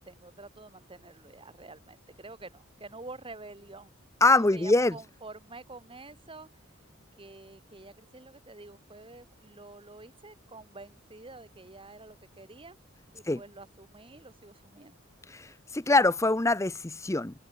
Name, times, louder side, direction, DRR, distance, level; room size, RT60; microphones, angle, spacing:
voice 1, 0.0-3.9 4.3-6.5 7.2-12.8 13.1-14.9, right 2 dB, 25° right, 2.2 m, -48 dB
voice 2, 4.2-5.0 13.3-13.4 15.3-17.3, left 2 dB, 15° left, 0.6 m, -24 dB
open air
head